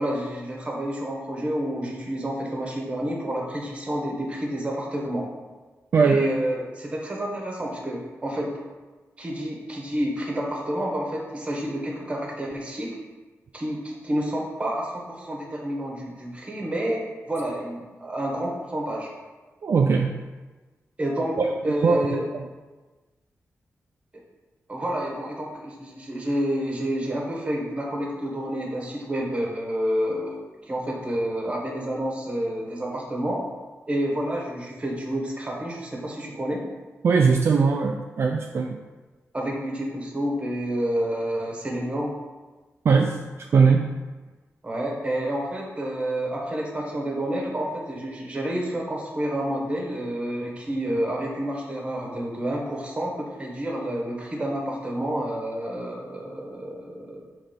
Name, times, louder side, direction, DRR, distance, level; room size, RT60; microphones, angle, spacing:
voice 1, 0.0-5.3 6.0-8.5 9.2-12.9 13.5-17.0 17.3-19.1 21.0-21.4 21.6-22.3 24.7-30.4 30.7-33.4 33.9-36.6 39.3-42.1 44.6-57.2, right 1 dB, 20° right, -1 dB, 1.1 m, -29 dB
voice 2, 19.6-20.1 21.4-22.1 22.3-22.5 37.0-38.8 42.8-43.8, right 5 dB, 50° right, 2 dB, 0.3 m, -20 dB
5.8 x 3.2 x 5.1 m, 1.3 s
wide cardioid pair, 150°, 5 cm